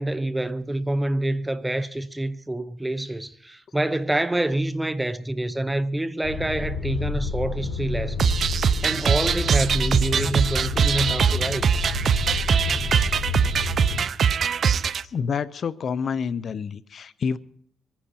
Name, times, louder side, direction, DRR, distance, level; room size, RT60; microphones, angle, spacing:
voice 1, 0.0-11.7, right 1 dB, 10° right, 0.9 m, -27 dB
sound 1, 6.2-14.0, left 4 dB, 80° left, 4.8 m, -29 dB
sound 2, 8.2-15.0, right 7 dB, 55° right, 0.5 m, -22 dB
voice 2, 15.0-17.4, left 6 dB, 50° left, 0.6 m, -28 dB
25.0 x 10.0 x 4.4 m
cardioid pair, 90°, 0 cm